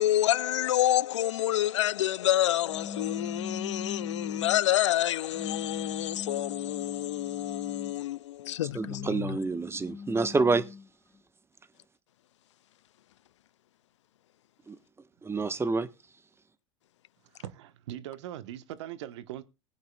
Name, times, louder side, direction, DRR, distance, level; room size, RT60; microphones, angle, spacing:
voice 1, 0.0-9.1, left 13 dB, 85° left, 0.5 m, -28 dB
sound 1, 2.7-4.7 5.3-8.0 8.6-10.9, left 6 dB, 15° left, 0.5 m, -40 dB
voice 2, 8.6-10.6 14.7-14.8 15.2-15.9, right 3 dB, 15° right, 1.3 m, -28 dB
voice 3, 17.3-19.4, right 12 dB, 75° right, 1.2 m, -40 dB
19.5 x 9.6 x 2.3 m
hypercardioid pair, 85°, 15 cm